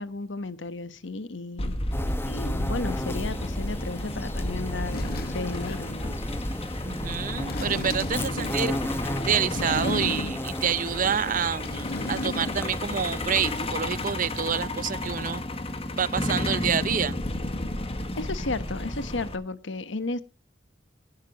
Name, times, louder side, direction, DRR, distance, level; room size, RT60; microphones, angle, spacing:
voice 1, 0.0-1.7 2.2-6.1 18.2-20.2, left 3 dB, 70° left, 1.2 m, -34 dB
Truck, 1.6-19.4, left 1 dB, 30° left, 1.7 m, -32 dB
sound 1, 1.9-13.6, left 1 dB, 15° left, 1.1 m, -35 dB
sound 2, 4.4-4.5 4.9-6.0 7.3-8.7 9.5-10.6 11.0-12.7 13.0-13.1, left 1 dB, 55° left, 1.7 m, -34 dB
voice 2, 6.8-15.4 16.0-17.2, right 7 dB, 45° right, 0.7 m, -28 dB
17.5 x 12.0 x 3.0 m
head